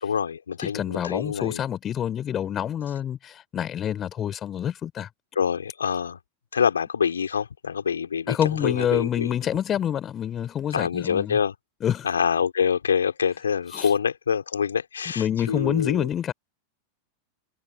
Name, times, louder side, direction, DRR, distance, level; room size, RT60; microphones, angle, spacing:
voice 1, 0.0-1.6 5.4-6.2 6.5-9.3 10.7-11.5 12.0-16.1, left 7 dB, 70° left, 3.8 m, -26 dB
voice 2, 0.6-5.1 8.3-11.4 11.8-12.1 13.7-13.9 15.2-16.3, left 10 dB, 25° left, 3.9 m, -27 dB
figure-of-eight pair, 90°, 0 cm